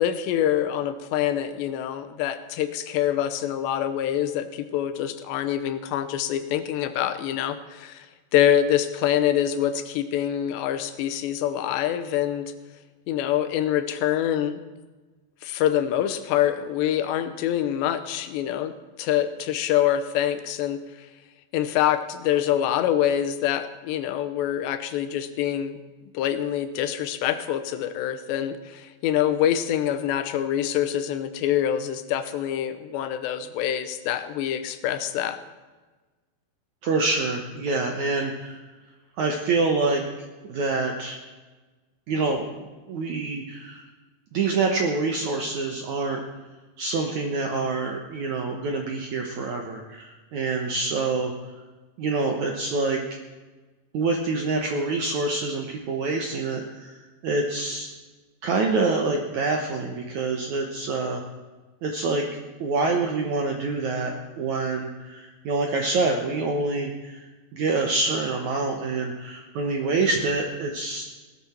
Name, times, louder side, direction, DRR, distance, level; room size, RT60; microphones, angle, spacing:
voice 1, 0.0-8.1 8.3-12.5 13.1-14.6 15.4-21.1 21.5-25.8 26.1-35.4, left 11 dB, 85° left, 10 dB, 3.1 m, -25 dB
voice 2, 36.8-38.6 39.2-40.0 40.5-41.2 42.1-42.6 42.9-43.8 44.3-46.2 46.8-51.3 52.0-53.0 53.9-56.9 57.2-57.9 58.4-61.2 61.8-62.2 62.6-67.3 67.5-71.0, right 3 dB, 70° right, 3 dB, 1.8 m, -26 dB
17.5 x 13.0 x 4.4 m, 1.3 s
omnidirectional pair, 4.9 m